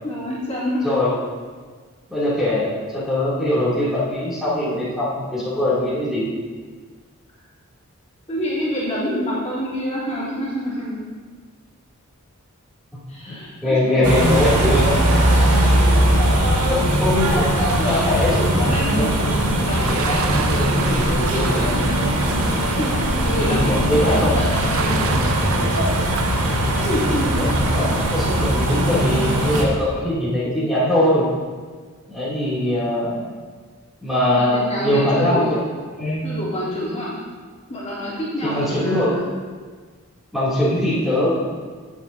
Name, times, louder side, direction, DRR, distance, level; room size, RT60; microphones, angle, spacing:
voice 1, 0.0-0.9 8.3-11.1 13.1-14.6 15.4-17.0 17.5-21.8 22.7-25.9 26.8-27.4 34.2-35.6 36.2-37.1 37.7-39.3, equal, 30° left, -9 dB, 3.1 m, -27 dB
voice 2, 2.1-2.7 2.9-6.3 13.6-15.0 16.7-18.5 18.9-19.1 20.7-21.0 21.3-21.5 23.4-24.3 27.8-31.2 32.1-33.3 34.0-35.6 36.0-36.2 38.4-39.1 40.3-41.7, left 1 dB, ahead, -11 dB, 2.7 m, -21 dB
sound 1, 14.0-29.7, right 1 dB, 85° right, 1.7 m, -20 dB
sound 2, 17.5-28.5, right 5 dB, 65° right, 0.6 m, -32 dB
18.0 x 7.3 x 2.7 m, 1.5 s
head